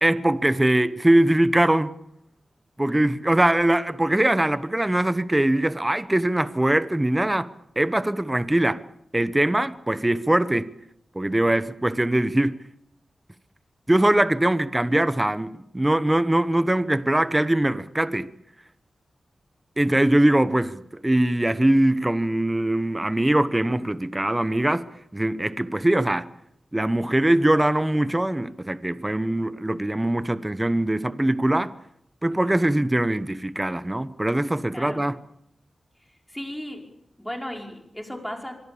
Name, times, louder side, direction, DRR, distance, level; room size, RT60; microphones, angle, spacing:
voice 1, 0.0-2.0 2.8-7.5 7.8-8.8 9.1-10.7 11.1-12.6 13.9-18.3 19.8-24.9 25.1-26.2 26.7-31.7 32.2-35.1, right 1 dB, 15° right, 1.0 m, -22 dB
voice 2, 34.7-35.0 36.3-36.8 37.2-38.5, left 1 dB, 5° left, 5.5 m, -35 dB
25.5 x 23.5 x 7.1 m
wide cardioid pair, 105°, 0 cm